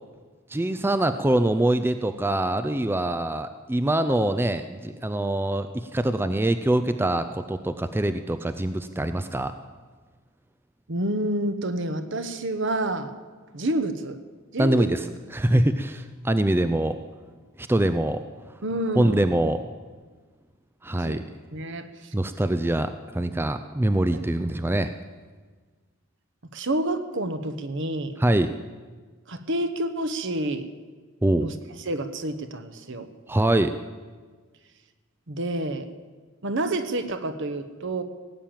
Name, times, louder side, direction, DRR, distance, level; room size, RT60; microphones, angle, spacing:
voice 1, 0.5-9.5 14.6-17.0 17.6-18.2 19.0-19.6 20.8-21.2 22.1-24.9 28.2-28.5 31.2-31.5 33.3-33.8, right 1 dB, 10° right, 9 dB, 0.4 m, -24 dB
voice 2, 10.9-13.1 13.5-14.2 14.5-14.9 15.5-15.7 18.6-19.2 21.0-21.2 21.5-22.1 26.5-28.1 29.3-30.7 31.4-31.5 31.9-33.1 35.3-35.9 36.4-38.0, right 1 dB, 60° right, 10 dB, 1.1 m, -28 dB
17.5 x 8.8 x 7.4 m, 1.4 s
head